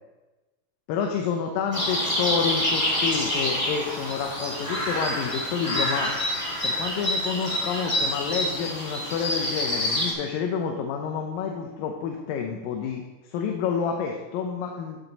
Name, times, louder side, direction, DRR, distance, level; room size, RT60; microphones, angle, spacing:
voice 1, 0.9-6.1 6.6-15.0, left 6 dB, 90° left, 2 dB, 2.5 m, -29 dB
sound 1, 1.7-10.1, left 1 dB, 25° left, 0.7 m, -27 dB
13.5 x 5.3 x 4.0 m, 1.1 s
omnidirectional pair, 3.9 m